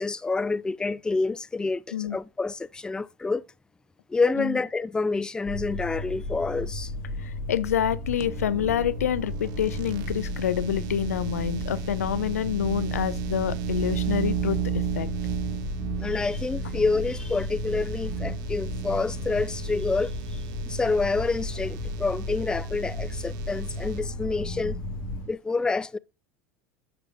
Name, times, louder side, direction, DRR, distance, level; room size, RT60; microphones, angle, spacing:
voice 1, 0.0-3.4 4.1-6.9 16.0-24.8 25.3-26.0, left 3 dB, 10° left, 0.4 m, -28 dB
sound 1, 5.5-25.3, left 1 dB, 55° left, 2.0 m, -34 dB
voice 2, 7.2-15.1, left 9 dB, 85° left, 0.5 m, -27 dB
sound 2, 8.2-24.0, right 10 dB, 55° right, 1.0 m, -35 dB
10.0 x 6.8 x 2.4 m
hypercardioid pair, 80°, 8 cm